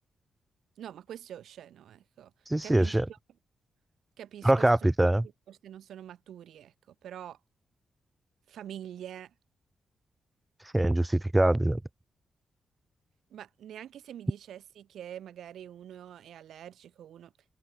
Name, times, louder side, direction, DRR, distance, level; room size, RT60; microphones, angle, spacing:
voice 1, 0.8-2.3 2.6-2.9 4.2-4.9 5.5-7.4 8.5-9.3 13.3-17.3, right 10 dB, 90° right, 2.2 m, -45 dB
voice 2, 2.5-3.1 4.4-5.3 10.7-11.8, right 1 dB, 10° right, 0.6 m, -23 dB
wide cardioid pair, 130°, 0 cm